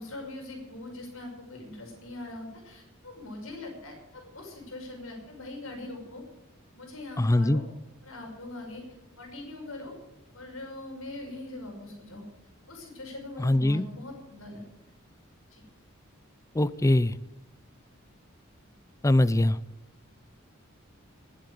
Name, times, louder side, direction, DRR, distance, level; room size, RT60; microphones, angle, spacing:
voice 1, 0.0-6.2 6.7-7.6 8.0-8.8 9.2-9.9 10.3-12.2 12.6-14.6 15.5-15.6, left 2 dB, 75° left, 1 dB, 5.9 m, -41 dB
voice 2, 7.2-7.6 13.4-13.9 16.5-17.2 19.0-19.6, left 1 dB, 15° left, 16 dB, 0.4 m, -22 dB
20.0 x 7.8 x 8.2 m, 1.0 s
head